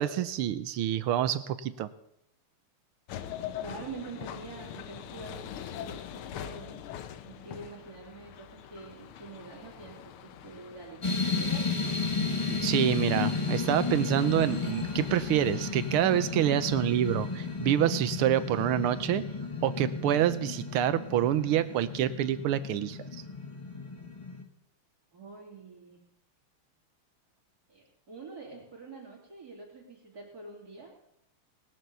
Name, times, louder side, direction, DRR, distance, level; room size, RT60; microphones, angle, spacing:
voice 1, 0.0-1.9 12.5-19.2 19.6-23.2, right 11 dB, 85° right, 14 dB, 1.7 m, -27 dB
sound 1, 3.1-17.6, left 10 dB, 80° left, 1.7 m, -44 dB
voice 2, 3.6-6.8 7.2-11.7 25.1-26.0 27.7-30.9, right 4 dB, 45° right, -2 dB, 3.5 m, -46 dB
sound 2, 11.0-24.4, left 4 dB, 20° left, 1.0 m, -33 dB
19.0 x 7.6 x 6.8 m, 0.77 s
omnidirectional pair, 2.4 m